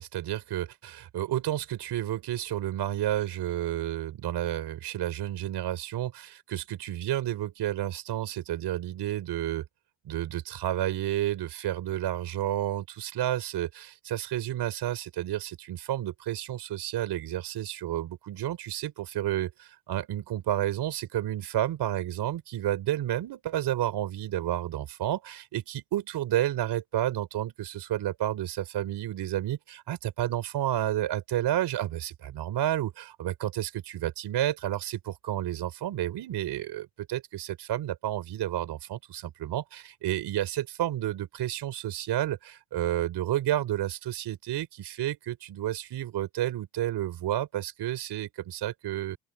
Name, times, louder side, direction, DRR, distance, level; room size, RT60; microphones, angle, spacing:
voice 1, 0.0-9.6 10.0-49.2, right 13 dB, 60° right, 4.3 m, -31 dB
open air
supercardioid pair, 95°, 46 cm